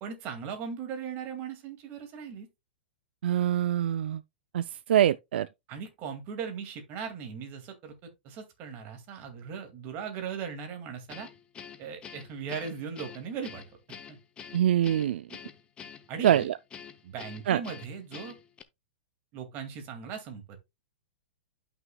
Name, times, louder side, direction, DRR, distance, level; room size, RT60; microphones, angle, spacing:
voice 1, 0.0-2.5 5.7-11.3 11.8-13.6 14.1-14.2 16.1-16.5 17.0-18.4 19.3-20.6, right 6 dB, 35° right, 2.1 m, -38 dB
voice 2, 3.2-4.2 4.5-5.5 14.5-15.3 16.2-16.6 17.5-17.6, right 11 dB, 75° right, 0.4 m, -24 dB
Guitar, 11.1-18.6, left 7 dB, 15° left, 0.7 m, -46 dB
11.0 x 6.0 x 2.2 m
hypercardioid pair, 150°, 6 cm